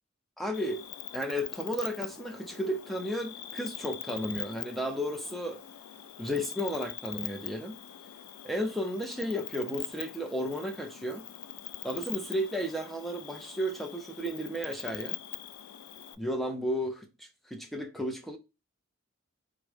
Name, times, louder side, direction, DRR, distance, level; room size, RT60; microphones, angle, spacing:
voice 1, 0.4-0.8 1.1-5.6 6.2-7.7 8.4-11.3 11.8-15.2 16.2-16.9 17.5-18.4, equal, ahead, 0.4 m, -33 dB
Cricket, 0.5-16.1, left 12 dB, 85° left, 0.3 m, -43 dB
3.6 x 2.0 x 3.3 m
head